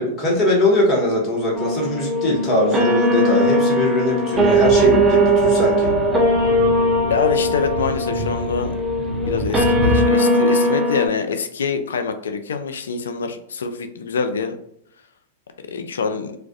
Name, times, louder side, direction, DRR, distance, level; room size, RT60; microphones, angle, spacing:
voice 1, 0.0-5.9, left 1 dB, 35° left, -1 dB, 1.2 m, -21 dB
sound 1, 1.6-11.1, right 1 dB, 20° right, 0.6 m, -19 dB
sound 2, 4.3-10.1, equal, 70° right, 0.5 m, -28 dB
voice 2, 7.1-8.7 9.3-14.6 15.7-16.4, left 5 dB, 80° left, 8 dB, 0.3 m, -25 dB
2.4 x 2.2 x 2.3 m, 0.72 s
hypercardioid pair, 110°, 0 cm